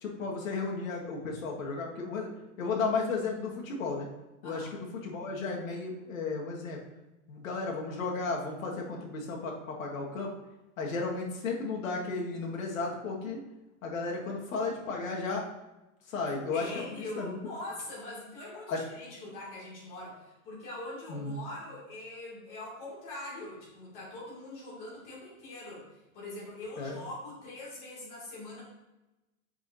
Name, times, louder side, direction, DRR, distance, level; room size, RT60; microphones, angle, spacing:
voice 1, 0.0-2.3 2.6-4.1 4.4-6.8 7.3-10.3 10.8-13.4 13.8-15.4 16.1-17.4 18.7-18.8 21.1-21.4 26.8-27.0, left 4 dB, 65° left, -1 dB, 1.7 m, -34 dB
voice 2, 16.5-25.8 26.1-28.6, left 2 dB, 20° left, -7 dB, 2.3 m, -42 dB
8.2 x 6.0 x 2.7 m, 1.0 s
hypercardioid pair, 175°, 43 cm